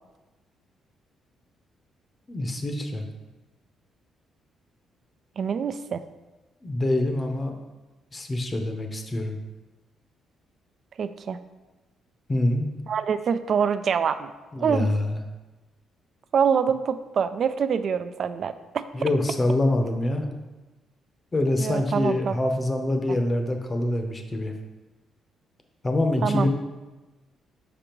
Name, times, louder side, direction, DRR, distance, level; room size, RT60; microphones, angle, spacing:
voice 1, 2.3-3.1 6.6-7.6 8.1-9.4 12.3-12.7 14.5-15.2 18.9-20.3 21.3-24.5 25.8-26.5, left 1 dB, 25° left, 5 dB, 0.7 m, -25 dB
voice 2, 5.4-6.0 11.0-11.4 12.9-14.3 14.6-14.9 16.3-18.8 21.6-22.3 26.2-26.5, right 7 dB, 50° right, 11 dB, 0.3 m, -25 dB
6.1 x 5.1 x 3.0 m, 1.1 s
cardioid pair, 115°, 0 cm